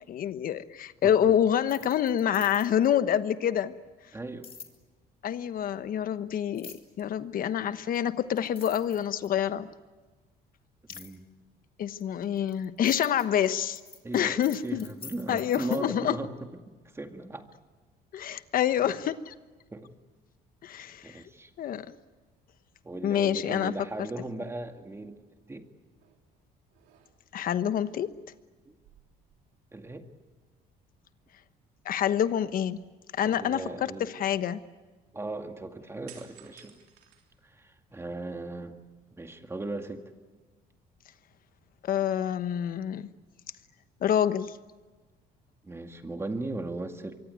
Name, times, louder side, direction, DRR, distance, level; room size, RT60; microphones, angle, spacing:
voice 1, 0.1-3.7 5.2-9.7 11.8-13.8 14.1-14.9 15.3-16.2 18.1-19.3 20.6-21.2 21.6-21.9 23.0-23.7 27.3-28.1 31.8-32.8 33.1-34.6 41.8-43.1 44.0-44.6, left 9 dB, 55° left, 12 dB, 1.2 m, -27 dB
sound 1, 1.6-2.9 4.4-4.7 6.5-7.0 7.9-8.0 8.4-9.5 10.9-11.2 12.0-15.8, left 6 dB, 35° left, 2.8 m, -47 dB
voice 2, 4.1-4.5 10.9-11.3 14.0-14.4 14.6-17.5 18.2-18.4 18.8-19.0 19.7-20.0 21.0-21.5 22.8-25.2 25.5-25.7 28.7-28.8 29.7-30.1 33.2-34.1 35.1-36.8 37.4-38.8 39.2-40.0 45.6-47.2, right 2 dB, 15° right, 6 dB, 2.1 m, -38 dB
sound 2, 26.0-26.3 26.7-27.5 28.7-30.0 30.3-30.4 36.1-37.9 38.4-39.3, right 10 dB, 85° right, 3.6 m, -56 dB
24.5 x 24.0 x 9.3 m, 1.3 s
cardioid pair, 110°, 17 cm